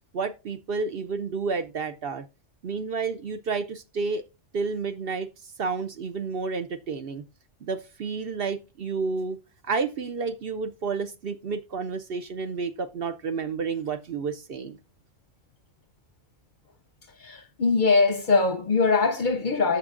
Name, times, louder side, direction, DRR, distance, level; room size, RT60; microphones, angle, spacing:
voice 1, 0.1-2.2 2.6-4.2 4.5-5.3 5.6-7.2 7.6-9.4 9.6-14.8, right 4 dB, 55° right, 0.8 m, -30 dB
voice 2, 17.2-19.8, left 4 dB, 50° left, 0.7 m, -22 dB
14.5 x 6.1 x 2.5 m
omnidirectional pair, 1.3 m